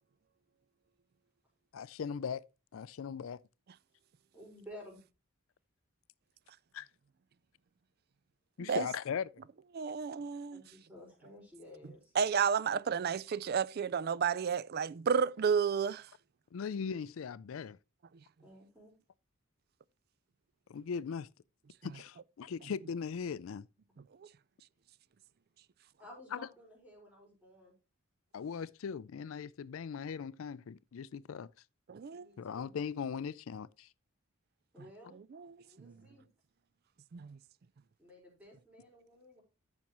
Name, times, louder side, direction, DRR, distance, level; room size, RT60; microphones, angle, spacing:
voice 1, 1.7-2.4 2.7-3.4 6.7-6.9 8.6-9.3 16.5-17.8 20.7-21.3 21.8-23.7 26.3-26.4 28.3-31.5 32.4-33.9, left 6 dB, 70° left, 0.4 m, -39 dB
voice 2, 4.3-5.0 10.5-12.1 18.4-18.9 26.0-27.7 32.1-32.7 34.7-35.2 35.6-36.3 38.0-39.4, equal, 5° right, 5.0 m, -54 dB
voice 3, 9.7-10.6 12.2-16.1 24.2-24.3 31.9-32.3 35.3-36.0 37.1-37.4, right 6 dB, 45° right, 0.4 m, -32 dB
14.0 x 6.1 x 3.0 m
head